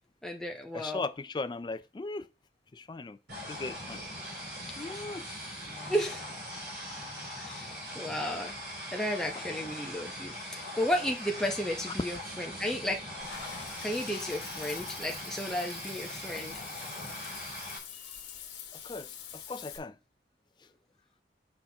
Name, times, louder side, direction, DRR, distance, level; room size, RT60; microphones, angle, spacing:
voice 1, 0.2-1.0 5.2-5.4 5.7-6.3 7.4-8.6 8.9-13.0 13.8-16.6 18.0-18.3, equal, 5° left, 0.8 m, -33 dB
voice 2, 0.7-2.3 2.7-3.2 3.5-4.0 4.8-5.2 18.8-19.9, left 3 dB, 25° left, 0.3 m, -38 dB
sound 1, 3.3-17.8, equal, 60° right, 3.3 m, -41 dB
Water / Bathtub (filling or washing), 13.2-19.8, left 8 dB, 75° left, 1.3 m, -45 dB
6.4 x 5.7 x 2.9 m
head